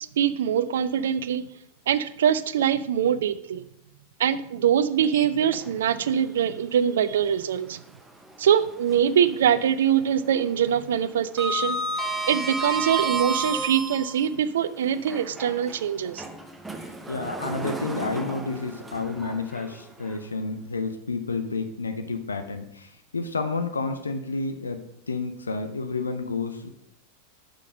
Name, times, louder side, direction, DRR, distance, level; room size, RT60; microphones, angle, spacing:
voice 1, 0.2-1.5 1.9-3.7 4.2-7.8 8.4-11.8 12.3-16.2, right 9 dB, 60° right, 15 dB, 0.4 m, -23 dB
Sliding door, 5.0-6.0 6.4-6.5 8.2-9.3 9.5-9.9 10.2-14.3 14.9-20.1, right 2 dB, 10° right, 0.6 m, -32 dB
voice 2, 17.1-26.7, left 3 dB, 75° left, 8 dB, 0.6 m, -30 dB
6.4 x 5.3 x 5.3 m, 0.76 s
figure-of-eight pair, 90°, 0 cm